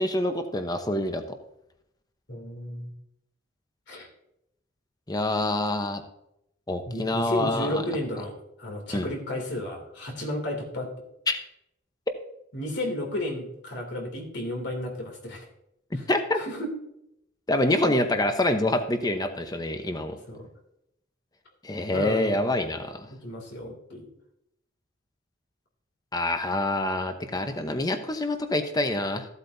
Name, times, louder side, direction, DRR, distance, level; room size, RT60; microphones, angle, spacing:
voice 1, 0.0-1.4 5.1-6.0 6.7-7.8 8.9-9.1 11.3-11.4 16.1-16.4 17.5-20.2 21.6-23.1 26.1-29.3, left 1 dB, 20° left, 7 dB, 0.9 m, -26 dB
voice 2, 2.3-2.9 3.9-4.1 6.9-10.9 12.5-15.5 15.9-16.0 16.4-16.7 17.8-18.0 20.3-20.5 21.9-22.4 23.1-24.1, left 1 dB, 60° left, 2 dB, 2.7 m, -33 dB
14.5 x 8.2 x 2.7 m, 0.80 s
head